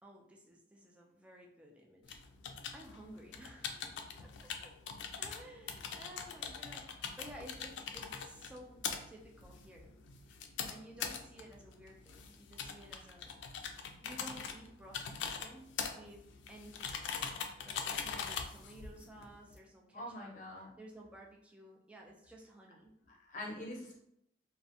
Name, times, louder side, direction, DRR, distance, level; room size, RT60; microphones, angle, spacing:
voice 1, 0.0-2.2 2.7-4.8 5.2-10.0 10.7-13.4 14.0-16.2 16.5-17.3 17.6-20.3 20.6-22.9, equal, 5° right, -1 dB, 0.4 m, -54 dB
sound 1, 2.1-19.6, left 6 dB, 90° left, 0.3 m, -43 dB
voice 2, 19.9-20.7 23.1-24.0, left 1 dB, 45° left, -3 dB, 0.7 m, -44 dB
2.4 x 2.1 x 2.6 m, 0.74 s
head